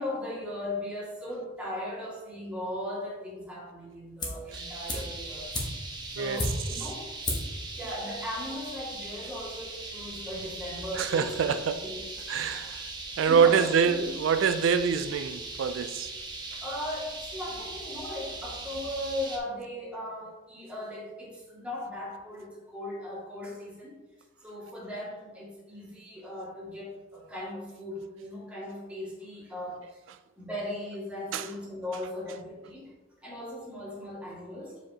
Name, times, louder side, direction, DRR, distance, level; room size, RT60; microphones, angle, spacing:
voice 1, 0.0-5.5 6.1-7.1 7.7-11.4 11.8-12.0 13.2-13.7 14.0-14.1 16.6-24.0 24.4-30.0 30.4-32.9 33.2-34.8, left 1 dB, 5° right, 2.0 m, -38 dB
sound 1, 4.2-4.5 4.9-6.9 7.2-7.6 7.9-8.0, left 1 dB, 25° left, 1.2 m, -32 dB
sound 2, 4.5-19.4, right 2 dB, 25° right, 0.9 m, -40 dB
voice 2, 6.2-6.5 11.0-11.8 12.3-12.9 13.2-16.1 16.5-16.6 31.3-31.5, right 6 dB, 90° right, 0.3 m, -25 dB
7.0 x 5.2 x 2.8 m
head